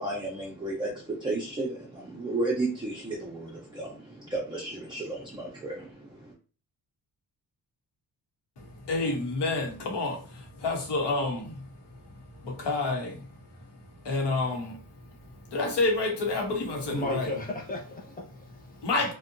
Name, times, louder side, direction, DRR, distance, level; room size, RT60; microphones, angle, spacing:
voice 1, 0.0-6.3, right 2 dB, 10° right, 0.4 m, -33 dB
voice 2, 8.6-17.3 18.7-19.1, left 3 dB, 85° left, 0.9 m, -30 dB
voice 3, 16.8-18.9, left 1 dB, 20° left, 0.7 m, -35 dB
2.7 x 2.2 x 2.5 m
wide cardioid pair, 170°, 40 cm